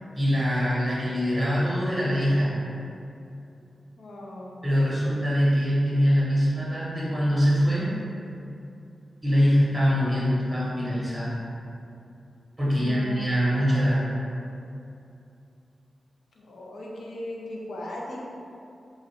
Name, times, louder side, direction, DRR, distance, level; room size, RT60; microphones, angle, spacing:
voice 1, 0.2-2.6 4.6-7.9 9.2-11.3 12.6-14.1, equal, 5° right, -8 dB, 1.0 m, -23 dB
voice 2, 4.0-4.6 12.7-13.5 16.3-18.2, left 1 dB, 80° left, -3 dB, 0.6 m, -38 dB
3.1 x 2.4 x 4.3 m, 2.7 s
wide cardioid pair, 175°, 0 cm